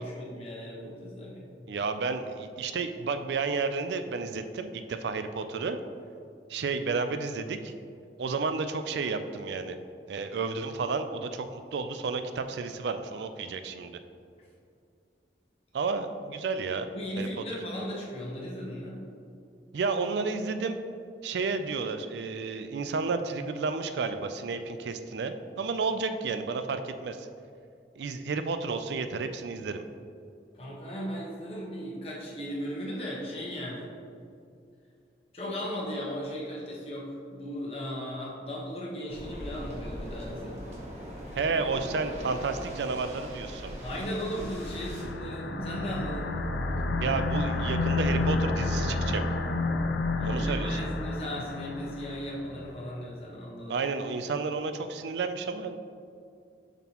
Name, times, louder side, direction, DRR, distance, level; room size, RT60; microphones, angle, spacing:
voice 1, 0.0-1.5 16.9-19.0 30.5-33.9 35.3-40.6 43.8-46.3 50.2-53.8, equal, 35° left, -5 dB, 1.2 m, -36 dB
voice 2, 1.7-5.8 6.5-7.7 8.2-9.8 10.1-14.0 15.7-16.9 17.2-17.3 19.7-20.8 21.2-27.3 28.0-29.8 41.4-43.7 47.0-49.2 50.2-50.9 53.7-55.8, right 4 dB, 75° right, 9 dB, 0.4 m, -31 dB
Waves surf, 39.1-45.0, equal, 40° right, 1.3 m, -40 dB
sound 1, 43.9-52.5, left 2 dB, 75° left, 0.5 m, -30 dB
7.0 x 6.0 x 3.0 m, 2.4 s
head